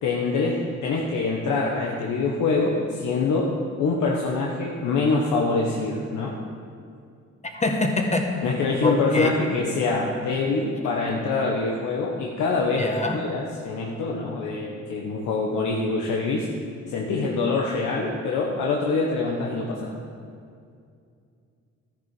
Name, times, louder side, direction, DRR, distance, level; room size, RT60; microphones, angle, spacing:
voice 1, 0.0-3.5 3.8-6.3 8.4-12.9 13.1-16.5 16.9-20.0, left 3 dB, 80° left, -1 dB, 1.4 m, -25 dB
voice 2, 7.5-8.2 8.8-9.3 12.8-13.2, left 3 dB, 25° left, 3 dB, 1.8 m, -24 dB
13.0 x 10.5 x 5.0 m, 2.3 s
cardioid pair, 90°, 30 cm